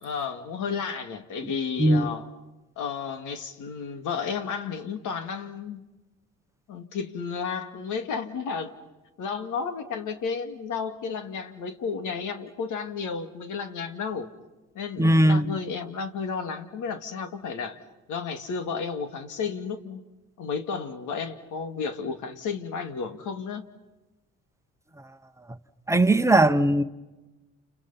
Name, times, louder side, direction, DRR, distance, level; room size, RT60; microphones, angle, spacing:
voice 1, 0.0-2.3 2.8-5.9 6.7-8.7 9.2-14.3 14.7-17.8 18.1-20.0 20.4-23.6, left 5 dB, 70° left, 2.3 m, -32 dB
voice 2, 15.0-15.5 25.9-26.8, right 1 dB, 10° right, 1.2 m, -19 dB
30.0 x 30.0 x 5.7 m
cardioid pair, 85°, 31 cm